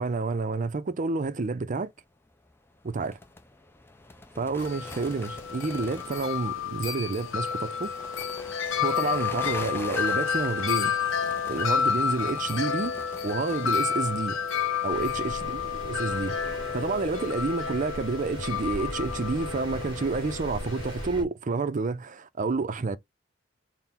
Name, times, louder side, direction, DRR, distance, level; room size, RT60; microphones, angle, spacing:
voice 1, 0.0-1.9 2.8-3.2 4.4-7.9 8.8-12.9 13.2-14.4 14.8-16.3 16.7-23.0, right 3 dB, 40° right, 0.5 m, -29 dB
sound 1, 2.2-14.2, left 2 dB, 10° left, 0.6 m, -45 dB
Wind chime, 4.6-21.1, left 7 dB, 80° left, 0.7 m, -30 dB
Thunder, 14.9-21.2, right 1 dB, 25° right, 1.0 m, -40 dB
4.3 x 2.1 x 3.8 m
head